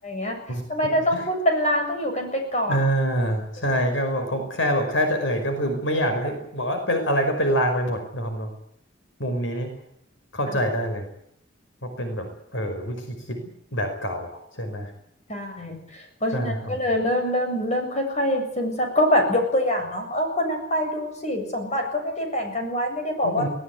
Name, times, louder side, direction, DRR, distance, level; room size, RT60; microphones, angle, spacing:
voice 1, 0.0-0.4 0.7-2.8 10.5-10.6 15.3-23.5, equal, 35° left, 4 dB, 7.6 m, -25 dB
voice 2, 2.7-8.5 9.2-9.7 10.3-11.1 11.8-14.9 16.3-16.8 23.2-23.5, equal, 80° left, 5 dB, 5.3 m, -26 dB
19.0 x 19.0 x 9.6 m, 0.73 s
head